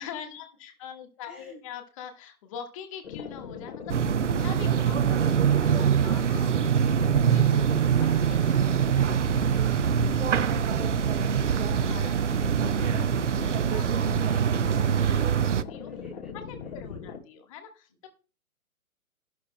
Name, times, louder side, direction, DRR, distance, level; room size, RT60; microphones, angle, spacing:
voice 1, 0.0-4.0 4.4-10.6 11.0-15.9 16.3-18.1, left 8 dB, 25° left, 6 dB, 1.5 m, -45 dB
voice 2, 1.3-1.6 4.1-4.4 10.6-11.2 11.5-11.9 15.8-16.3 16.6-16.7, left 1 dB, 10° left, -2 dB, 0.5 m, -52 dB
sound 1, 3.0-17.2, left 5 dB, 45° left, 2.8 m, -39 dB
sound 2, 3.9-15.6, right 8 dB, 55° right, 0.6 m, -24 dB
13.0 x 12.0 x 2.2 m, 0.34 s
figure-of-eight pair, 130°, 43 cm